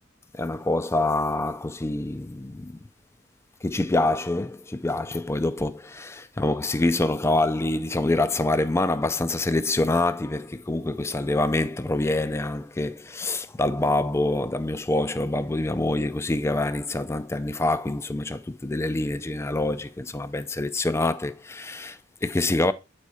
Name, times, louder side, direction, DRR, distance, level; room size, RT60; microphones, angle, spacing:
voice 1, 0.3-2.8 3.6-22.7, left 2 dB, 15° left, 0.4 m, -26 dB
8.1 x 4.9 x 4.1 m
head